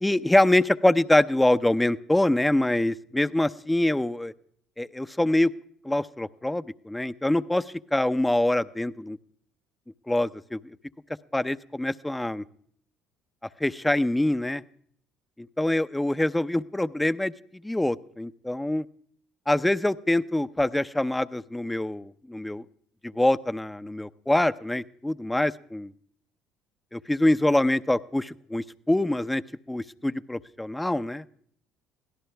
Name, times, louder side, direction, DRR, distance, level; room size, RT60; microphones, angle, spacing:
voice 1, 0.0-4.3 4.8-5.5 5.8-9.2 10.1-10.7 11.3-12.4 13.6-14.6 15.4-17.3 17.6-18.8 19.5-22.6 23.0-25.9 26.9-29.4 29.7-31.2, left 1 dB, 10° left, 13 dB, 0.7 m, -25 dB
24.0 x 17.0 x 3.5 m, 0.63 s
hypercardioid pair, 65°, 0 cm